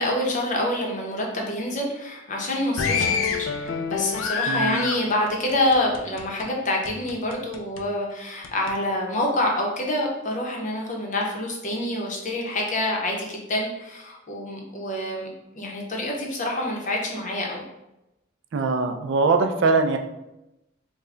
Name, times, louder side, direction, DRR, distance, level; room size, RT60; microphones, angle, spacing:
voice 1, 0.0-15.3 15.5-17.6, left 1 dB, 40° left, 0 dB, 0.7 m, -27 dB
sound 1, 2.8-6.5 6.8-7.8 8.4-8.7, left 5 dB, 75° left, 0.4 m, -28 dB
voice 2, 4.5-4.9 18.5-20.0, right 4 dB, 60° right, 6 dB, 0.4 m, -22 dB
3.3 x 2.1 x 3.6 m, 0.92 s
head